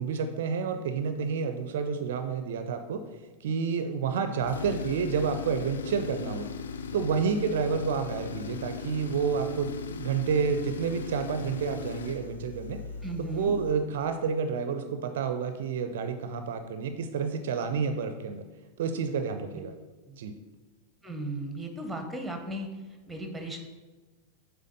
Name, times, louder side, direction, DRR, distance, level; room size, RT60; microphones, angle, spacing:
voice 1, 0.0-3.1 3.4-6.5 6.9-12.8 13.3-18.4 18.8-19.7 20.2-20.4, right 6 dB, 55° right, 8 dB, 0.4 m, -29 dB
Tools, 4.4-13.9, left 5 dB, 65° left, 0.4 m, -38 dB
voice 2, 13.0-13.5 20.1-20.2 21.0-22.7 23.1-23.6, right 1 dB, 5° right, 5 dB, 1.0 m, -36 dB
7.4 x 3.4 x 5.3 m, 1.2 s
figure-of-eight pair, 90°, 0 cm